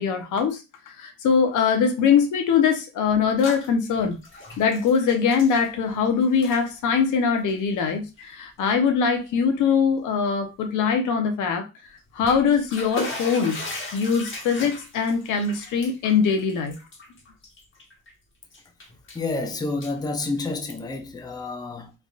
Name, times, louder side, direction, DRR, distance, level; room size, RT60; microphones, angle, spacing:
voice 1, 0.0-4.2 4.6-11.7 12.1-13.6 13.9-16.8, left 6 dB, 85° left, 0.8 m, -22 dB
Bathtub (filling or washing), 3.1-3.7 4.0-6.1 6.3-6.6 7.4-7.5 8.2-8.3 8.7-8.8 12.0-18.1 18.5-19.3 19.6-20.9, left 2 dB, 40° left, 1.3 m, -38 dB
voice 2, 19.1-21.9, left 3 dB, 15° left, 0.5 m, -29 dB
3.4 x 2.6 x 2.4 m
cardioid pair, 90°, 30 cm